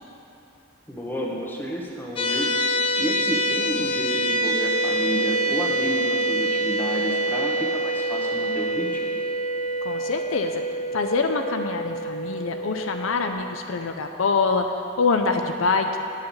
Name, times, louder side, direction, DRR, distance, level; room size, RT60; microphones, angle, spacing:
voice 1, 0.9-2.5 3.0-9.1, equal, 10° left, -3 dB, 1.2 m, -31 dB
sound 1, 2.2-13.3, right 1 dB, 30° left, 0.7 m, -26 dB
voice 2, 9.8-10.6 10.9-14.7 15.0-16.0, left 4 dB, 75° left, 5 dB, 0.5 m, -25 dB
8.9 x 5.8 x 7.1 m, 2.7 s
head